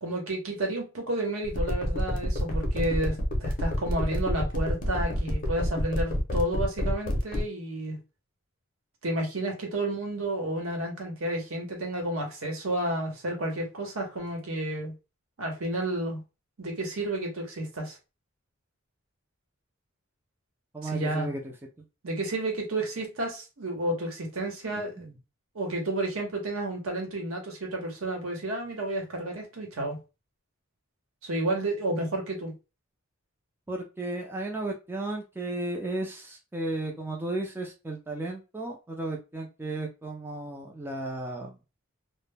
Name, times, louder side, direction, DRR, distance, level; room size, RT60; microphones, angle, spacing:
voice 1, 0.0-8.0 9.0-14.9 15.4-16.2 16.6-18.0 20.9-21.3 22.0-25.1 25.5-30.0 31.2-32.5, right 1 dB, 75° right, 0.8 m, -31 dB
sound 1, 1.4-7.4, left 1 dB, 40° left, 0.6 m, -29 dB
voice 2, 20.7-21.5 24.7-25.2 33.7-41.6, right 2 dB, 10° right, 0.3 m, -34 dB
2.1 x 2.0 x 3.2 m
head